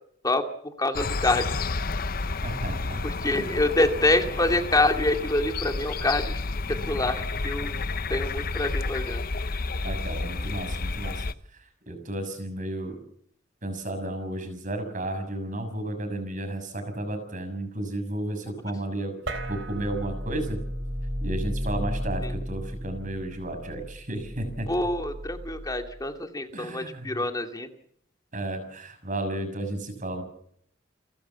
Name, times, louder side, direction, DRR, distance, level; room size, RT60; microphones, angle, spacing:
voice 1, 0.8-1.5 3.0-6.4 6.9-7.8 8.1-9.2 22.2-22.3 24.7-27.7, left 2 dB, 20° left, 5 dB, 2.3 m, -26 dB
sound 1, 0.9-11.3, left 3 dB, 50° left, 0.8 m, -31 dB
voice 2, 2.4-3.0 3.3-3.5 9.8-11.3 11.5-13.0 13.6-20.6 21.2-24.7 26.5-27.2 28.3-30.2, right 1 dB, 45° right, 8 dB, 6.5 m, -33 dB
sound 2, 19.3-26.0, equal, 70° right, 3.8 m, -34 dB
30.0 x 13.0 x 7.1 m, 0.67 s
head